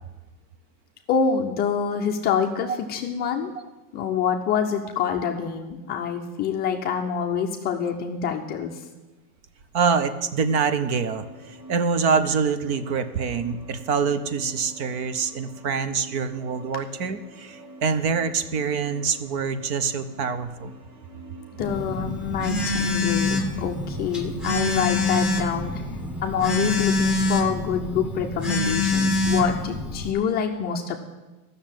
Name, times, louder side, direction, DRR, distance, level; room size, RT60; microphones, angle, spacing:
voice 1, 1.1-3.5 3.9-8.8 21.6-25.9 26.2-31.0, left 7 dB, 20° left, 2 dB, 0.6 m, -26 dB
voice 2, 9.7-20.7, right 5 dB, 40° right, 11 dB, 0.8 m, -25 dB
sound 1, 10.3-27.6, right 2 dB, 80° right, 2.9 m, -47 dB
Telephone, 21.6-30.1, left 2 dB, ahead, 1.2 m, -25 dB
12.5 x 6.6 x 8.9 m, 1.1 s
supercardioid pair, 150°, 47 cm